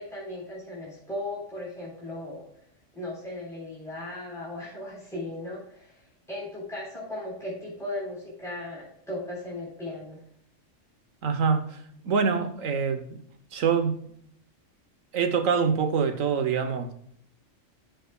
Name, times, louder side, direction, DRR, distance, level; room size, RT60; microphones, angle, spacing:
voice 1, 0.0-2.5 2.9-5.9 6.3-10.2, left 1 dB, ahead, 3.8 m, -37 dB
voice 2, 11.2-11.8 12.0-13.2 13.5-14.0 15.1-16.9, right 6 dB, 85° right, 1.4 m, -25 dB
13.0 x 7.7 x 2.3 m
omnidirectional pair, 1.3 m